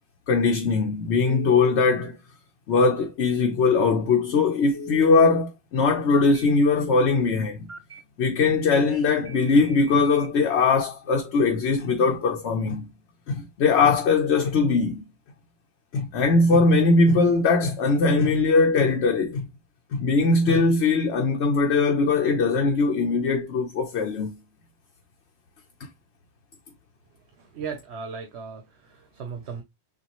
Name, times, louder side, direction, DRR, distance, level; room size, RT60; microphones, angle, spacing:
voice 1, 0.3-2.2 2.7-7.7 8.2-12.9 13.3-15.0 15.9-19.5 19.9-24.4, left 4 dB, 80° left, 1.1 m, -21 dB
Telephone, 1.2-1.7 4.7-5.2 6.1-6.4 7.7-8.0 9.3-10.3, left 2 dB, 35° right, 0.7 m, -40 dB
voice 2, 27.4-29.6, right 6 dB, 75° right, 1.1 m, -37 dB
6.8 x 2.4 x 3.0 m
omnidirectional pair, 1.1 m